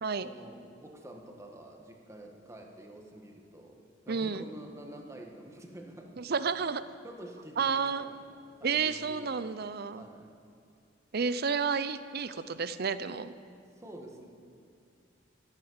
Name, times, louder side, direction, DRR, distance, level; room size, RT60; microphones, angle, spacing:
voice 1, 0.2-3.8 4.1-6.1 7.0-9.6 9.9-10.3 13.8-14.3, right 1 dB, 15° right, 1 dB, 1.6 m, -48 dB
voice 2, 4.1-4.4 6.2-6.8 7.6-8.1 8.6-10.0 11.1-13.3, right 5 dB, 55° right, 13 dB, 0.6 m, -31 dB
13.5 x 11.0 x 8.1 m, 2.5 s
head